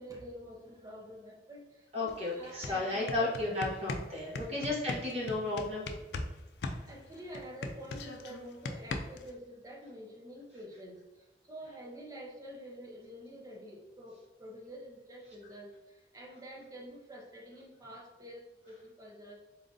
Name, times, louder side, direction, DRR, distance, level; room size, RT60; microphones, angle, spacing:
voice 1, 0.0-3.4 4.4-4.7 5.4-5.5 6.9-19.4, equal, 20° right, 0 dB, 0.6 m, -48 dB
voice 2, 1.9-5.8, left 2 dB, 35° right, -5 dB, 1.3 m, -33 dB
sound 1, 2.1-2.2 2.5-6.3 6.6-9.3, left 3 dB, 75° left, 0.4 m, -38 dB
3.9 x 2.5 x 3.8 m, 1.1 s
head